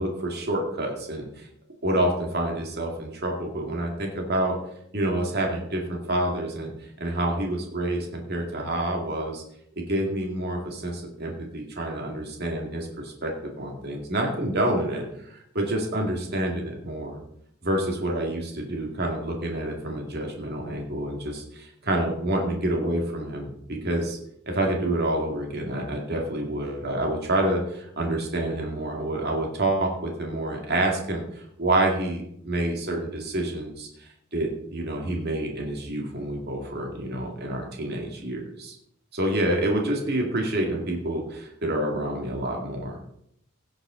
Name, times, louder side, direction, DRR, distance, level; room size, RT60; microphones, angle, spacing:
voice 1, 0.0-1.5 1.8-4.6 4.9-6.7 7.0-9.4 9.8-17.2 17.6-24.2 24.5-38.8 39.1-43.0, right 1 dB, 55° right, 1 dB, 2.2 m, -28 dB
16.5 x 7.8 x 3.9 m, 0.74 s
head